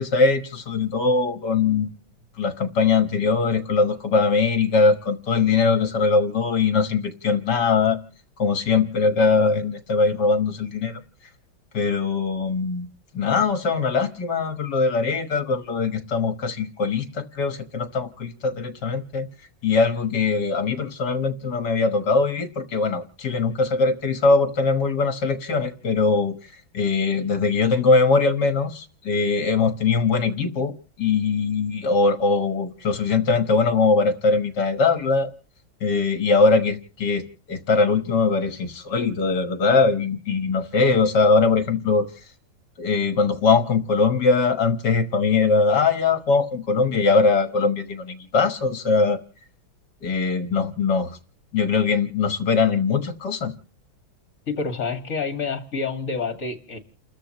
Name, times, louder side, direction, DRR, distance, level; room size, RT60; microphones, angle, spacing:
voice 1, 0.0-1.9 2.4-8.0 8.4-11.0 11.7-12.9 13.1-19.3 19.6-26.3 26.7-30.7 31.0-35.3 35.8-42.1 42.8-49.2 50.0-51.2 51.5-53.5, left 4 dB, 60° left, 1.9 m, -21 dB
voice 2, 54.5-56.8, left 4 dB, 45° left, 2.3 m, -28 dB
30.0 x 14.0 x 3.1 m
omnidirectional pair, 2.1 m